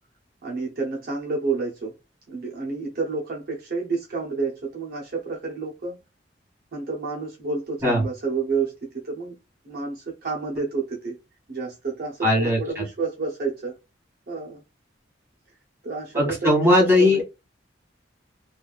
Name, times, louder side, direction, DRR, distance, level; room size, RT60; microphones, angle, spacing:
voice 1, 0.4-1.9 2.3-6.0 6.7-9.4 9.6-11.1 11.5-13.8 14.3-14.6 15.8-17.2, right 4 dB, 55° right, 0.7 m, -29 dB
voice 2, 12.2-12.8 16.1-17.2, left 1 dB, 15° right, 1.5 m, -19 dB
3.2 x 2.4 x 2.3 m
head